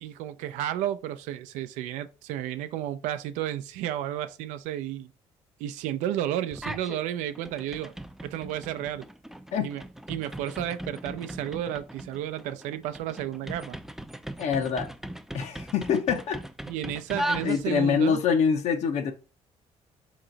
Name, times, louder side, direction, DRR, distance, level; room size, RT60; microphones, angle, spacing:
voice 1, 0.0-5.1 5.6-7.9 8.2-9.1 9.6-9.8 10.1-13.8 16.7-18.2, right 11 dB, 90° right, 0.4 m, -32 dB
sound 1, 6.5-7.0 7.3-18.0, right 1 dB, 5° right, 0.3 m, -38 dB
voice 2, 14.4-14.9 15.3-16.4 17.4-19.1, left 6 dB, 65° left, 0.8 m, -25 dB
3.8 x 3.0 x 3.9 m
cardioid pair, 85°, 12 cm